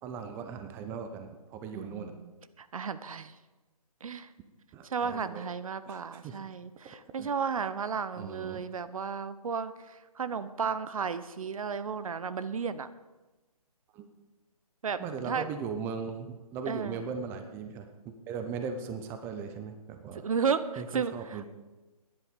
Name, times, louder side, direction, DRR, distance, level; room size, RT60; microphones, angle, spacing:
voice 1, 0.0-2.1 4.7-5.5 5.8-6.4 6.8-7.3 8.2-8.6 13.9-14.1 15.0-20.3 20.8-21.4, right 5 dB, 10° right, 7 dB, 0.6 m, -38 dB
voice 2, 1.7-2.3 2.6-3.3 4.0-4.3 4.8-12.9 14.8-15.0 15.3-15.4 16.7-17.0 20.2-21.4, right 6 dB, 65° right, 14 dB, 0.7 m, -33 dB
12.5 x 10.5 x 5.2 m, 1.1 s
figure-of-eight pair, 145°, 19 cm